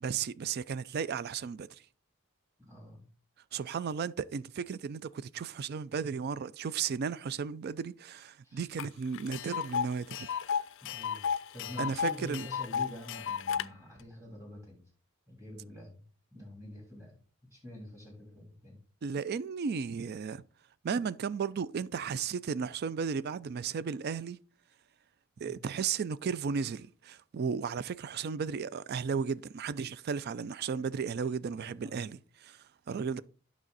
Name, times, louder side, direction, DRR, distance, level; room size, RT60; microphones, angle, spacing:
voice 1, 0.0-1.7 3.5-10.3 11.8-12.5 19.0-20.4 20.8-24.4 25.4-33.2, right 6 dB, 50° right, 0.4 m, -34 dB
voice 2, 2.6-3.1 8.4-8.9 10.8-14.8 15.3-16.0 16.3-17.2 17.5-18.8 25.4-25.6 31.5-32.1 32.9-33.1, left 1 dB, 15° right, 3.1 m, -47 dB
Tick, 8.8-8.9 9.1-13.7, left 7 dB, 60° left, 0.4 m, -33 dB
9.0 x 6.0 x 4.0 m
head